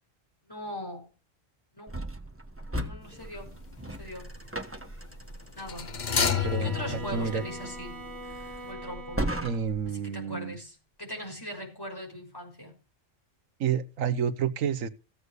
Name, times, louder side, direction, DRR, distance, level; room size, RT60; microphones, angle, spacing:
voice 1, 0.4-1.1 1.7-1.9 2.7-3.5 3.8-4.3 5.6-5.9 6.3-8.0 8.6-9.2 9.9-12.7, equal, 15° left, 5.8 m, -40 dB
sound 1, 1.9-9.9, right 1 dB, 10° right, 1.3 m, -38 dB
sound 2, 3.1-3.5 5.6-8.4 8.6-8.7, left 7 dB, 40° left, 0.9 m, -31 dB
Bowed string instrument, 6.0-9.7, left 1 dB, 50° right, 2.1 m, -43 dB
voice 2, 6.2-7.4 9.4-10.6 13.6-14.9, right 7 dB, 80° right, 1.3 m, -30 dB
15.5 x 8.2 x 6.5 m
omnidirectional pair, 1.4 m